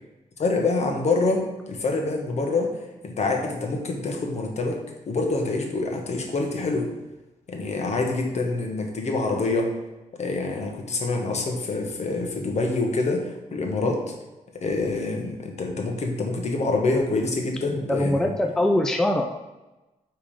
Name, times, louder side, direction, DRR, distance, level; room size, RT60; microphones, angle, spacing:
voice 1, 0.4-2.8 3.0-4.8 5.1-6.9 7.5-9.7 10.1-14.1 14.5-18.3, left 3 dB, 55° left, 2 dB, 1.4 m, -26 dB
voice 2, 17.7-19.3, left 1 dB, 5° left, 3 dB, 0.5 m, -22 dB
8.8 x 3.7 x 5.0 m, 1.1 s
wide cardioid pair, 125°, 13 cm